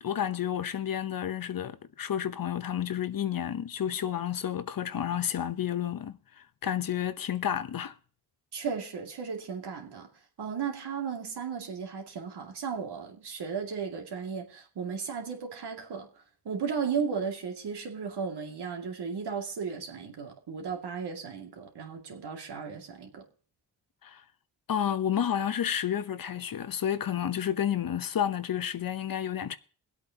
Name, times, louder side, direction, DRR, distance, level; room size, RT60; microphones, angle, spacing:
voice 1, 0.0-7.9 24.0-24.2 24.7-29.6, left 9 dB, 55° left, 0.9 m, -31 dB
voice 2, 8.5-10.1 10.4-16.1 16.4-23.3, right 6 dB, 75° right, 2.4 m, -35 dB
22.5 x 8.3 x 2.9 m
cardioid pair, 65°, 41 cm